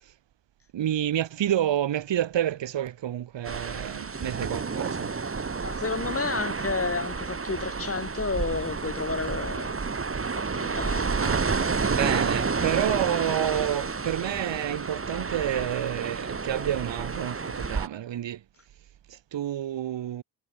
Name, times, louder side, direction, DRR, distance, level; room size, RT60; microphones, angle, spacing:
voice 1, 0.7-5.1 11.2-18.4 19.1-20.2, right 11 dB, 80° right, 2.1 m, -29 dB
sound 1, 3.4-17.9, right 4 dB, 30° right, 2.5 m, -30 dB
voice 2, 5.6-9.8 10.3-11.2, left 4 dB, 30° left, 6.0 m, -31 dB
cardioid pair, 90°, 43 cm